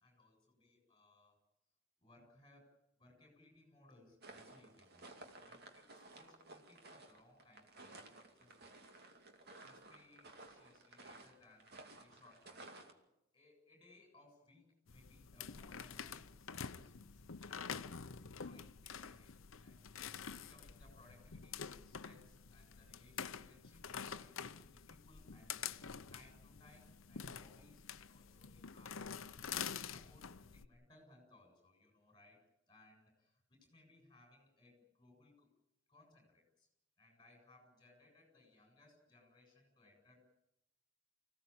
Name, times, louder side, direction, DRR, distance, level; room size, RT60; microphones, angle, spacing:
voice 1, 0.0-1.4 2.0-2.7 3.0-5.1 5.4-8.0 8.4-8.5 9.6-12.7 13.3-17.1 18.2-25.7 26.1-29.4 29.7-35.5 35.9-36.7 37.0-40.2, left 2 dB, 20° left, 2 dB, 7.7 m, -66 dB
sound 1, 4.2-12.9, right 2 dB, 50° right, 2.7 m, -56 dB
sound 2, 14.9-30.7, left 7 dB, 70° left, 0.8 m, -48 dB
25.5 x 17.0 x 8.7 m, 0.86 s
head